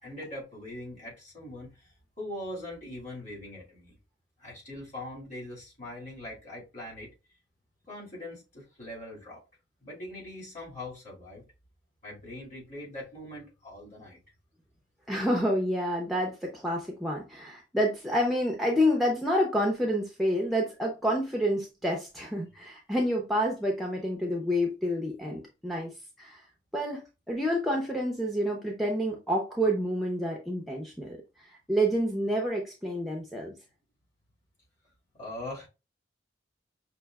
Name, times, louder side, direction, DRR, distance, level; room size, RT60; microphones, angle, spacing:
voice 1, 0.0-4.0 4.4-7.1 7.9-9.4 9.8-11.5 12.0-14.2 35.1-35.7, left 1 dB, 40° left, 2.1 m, -42 dB
voice 2, 15.1-25.9 26.2-26.4 26.7-27.0 27.3-31.2 31.5-33.5, equal, ahead, 0.6 m, -28 dB
5.7 x 2.5 x 2.3 m
head